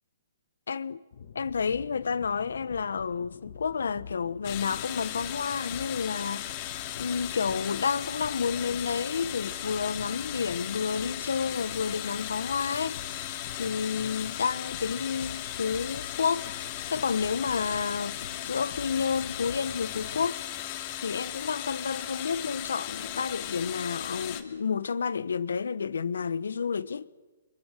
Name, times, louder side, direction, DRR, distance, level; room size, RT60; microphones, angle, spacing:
voice 1, 0.7-1.0 1.3-6.5 7.0-13.0 13.6-16.5 16.9-20.4 21.0-27.1, left 6 dB, 85° left, 1.1 m, -30 dB
sound 1, 1.1-20.3, left 6 dB, 60° left, 1.5 m, -46 dB
sound 2, 4.4-24.4, left 13 dB, 30° left, 2.4 m, -37 dB
29.5 x 25.0 x 6.7 m
hypercardioid pair, 160°, 0 cm